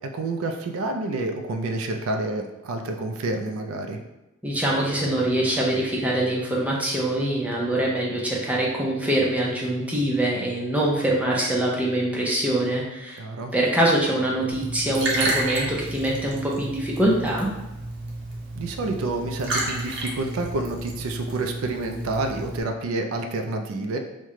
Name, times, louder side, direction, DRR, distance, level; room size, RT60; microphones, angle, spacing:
voice 1, 0.0-4.0 13.2-13.5 18.6-24.0, right 2 dB, 90° right, 5 dB, 0.4 m, -28 dB
voice 2, 4.4-13.2 13.5-17.5, right 1 dB, 5° right, -4 dB, 0.5 m, -24 dB
Liquid, 14.5-22.6, right 2 dB, 60° right, 0.7 m, -31 dB
3.1 x 2.1 x 3.6 m, 0.95 s
head